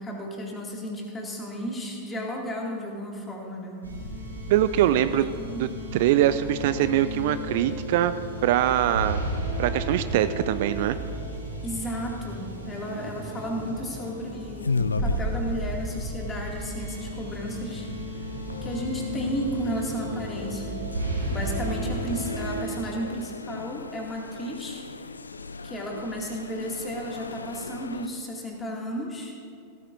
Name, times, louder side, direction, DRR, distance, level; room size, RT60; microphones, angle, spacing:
voice 1, 0.0-3.9 4.7-4.9 5.4-5.7 11.6-18.3 18.6-20.9 21.3-24.8 25.6-29.3, equal, 15° left, -1 dB, 2.4 m, -33 dB
sound 1, 3.8-22.6, right 1 dB, 80° right, 2.2 m, -33 dB
voice 2, 4.5-5.3 5.6-8.1 8.4-9.2 9.6-11.0, right 12 dB, 50° right, 13 dB, 0.3 m, -23 dB
sound 2, 9.9-28.1, left 4 dB, 75° left, 0.4 m, -38 dB
17.0 x 13.5 x 2.7 m, 2.3 s
figure-of-eight pair, 90°, 0 cm